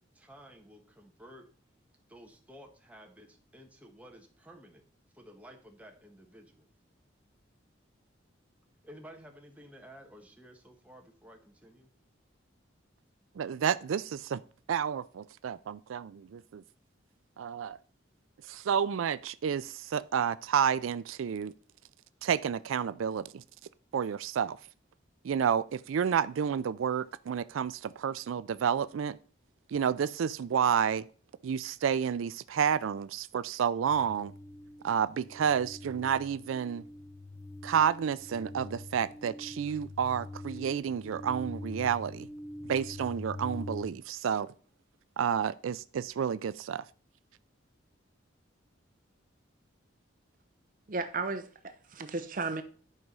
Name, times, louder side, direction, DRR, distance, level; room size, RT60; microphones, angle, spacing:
voice 1, 0.0-1.5 2.1-4.8 5.1-6.7 8.8-11.9, equal, 5° right, 1.3 m, -53 dB
voice 2, 13.4-14.4 14.7-16.6 17.4-17.8 18.5-21.5 22.2-23.4 23.9-24.6 25.2-29.2 29.7-31.0 31.4-34.3 34.8-36.8 37.6-42.3 42.7-44.5 45.2-46.8, right 7 dB, 90° right, 0.4 m, -30 dB
sound 1, 33.9-43.9, left 2 dB, 15° left, 0.9 m, -44 dB
voice 3, 50.9-52.6, right 3 dB, 45° right, 0.7 m, -34 dB
11.0 x 4.8 x 5.4 m
head